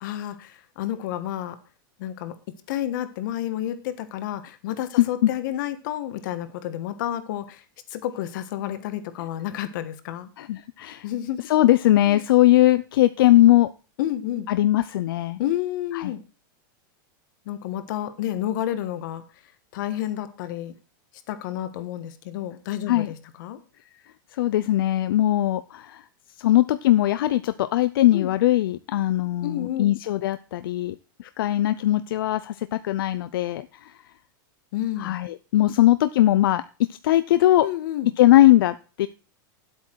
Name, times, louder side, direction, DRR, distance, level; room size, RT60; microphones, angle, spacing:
voice 1, 0.0-1.6 2.0-2.4 2.7-7.6 7.9-10.3 11.0-11.4 12.1-12.2 14.0-14.5 15.4-16.2 17.4-19.2 19.7-20.8 21.3-23.6 28.1-28.3 29.4-29.9 34.7-35.2 37.6-38.1, left 12 dB, 65° left, 12 dB, 1.4 m, -30 dB
voice 2, 5.0-5.3 10.4-11.0 11.4-13.7 14.5-15.4 15.9-16.1 22.9-23.1 24.3-26.0 26.4-34.0 35.0-36.6 37.0-37.7 38.2-39.1, left 14 dB, 85° left, 13 dB, 0.5 m, -20 dB
9.8 x 8.3 x 4.6 m, 0.36 s
supercardioid pair, 155°, 11 cm